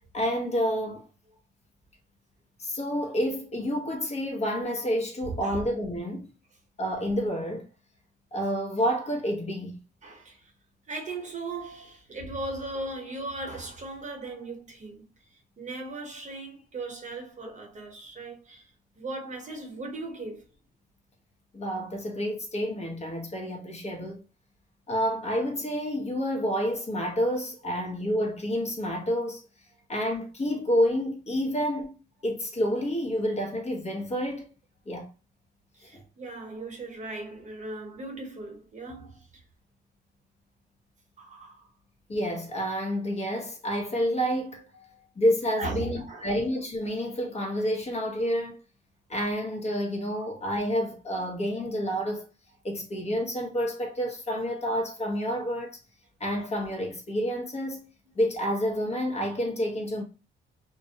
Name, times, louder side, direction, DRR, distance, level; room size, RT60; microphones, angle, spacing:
voice 1, 0.1-1.1 2.6-6.3 6.8-7.7 8.3-9.8 21.5-24.2 24.9-29.4 29.9-31.9 32.2-34.5 34.9-35.1 35.9-36.0 42.1-44.6 45.2-48.6 49.1-52.2 52.6-55.8 56.2-57.8 58.1-60.0, equal, 35° left, 0.9 m, -29 dB
voice 2, 5.2-5.6 10.0-10.5 10.9-20.4 35.7-39.4 41.2-41.7 44.9-45.1 45.6-46.3 50.1-50.2, right 2 dB, 40° right, 0.9 m, -38 dB
2.5 x 2.1 x 2.7 m
cardioid pair, 90°, 20 cm